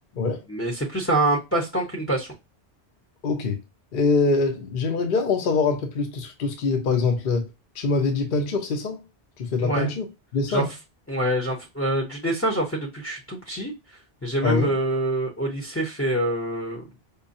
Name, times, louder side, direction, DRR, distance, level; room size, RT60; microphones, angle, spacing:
voice 1, 0.5-2.3 9.6-9.9 10.5-10.6 11.1-13.7 14.2-16.8, right 1 dB, 15° left, 0.7 m, -25 dB
voice 2, 3.2-3.6 3.9-9.0 9.4-10.1 10.3-10.7 14.4-14.7, left 4 dB, 55° left, 0.9 m, -24 dB
5.4 x 2.2 x 2.6 m
omnidirectional pair, 1.1 m